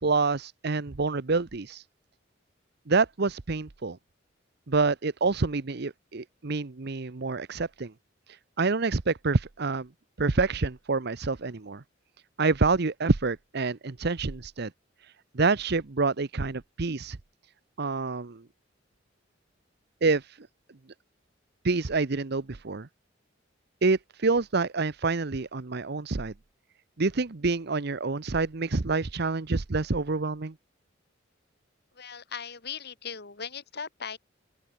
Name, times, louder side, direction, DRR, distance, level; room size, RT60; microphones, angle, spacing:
voice 1, 0.0-1.8 2.9-4.0 4.7-7.9 8.6-9.9 10.2-11.8 12.4-14.7 15.3-17.2 17.8-18.4 20.0-20.5 21.6-22.9 23.8-26.3 27.0-30.5, right 3 dB, 60° right, 0.9 m, -27 dB
voice 2, 31.9-34.2, left 6 dB, 60° left, 2.6 m, -38 dB
open air
head